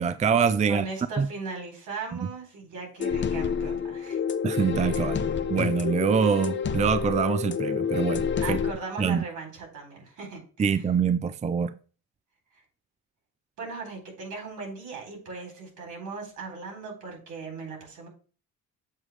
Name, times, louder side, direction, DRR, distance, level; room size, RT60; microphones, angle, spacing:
voice 1, 0.0-0.9 1.2-1.3 4.4-8.6 9.0-9.2 10.6-11.8, right 6 dB, 25° right, 0.4 m, -25 dB
voice 2, 0.7-4.2 8.4-10.7 13.6-18.1, right 4 dB, 75° right, 4.0 m, -38 dB
sound 1, 3.0-8.7, left 7 dB, 40° left, 0.7 m, -28 dB
7.5 x 3.1 x 6.2 m
cardioid pair, 90°, 30 cm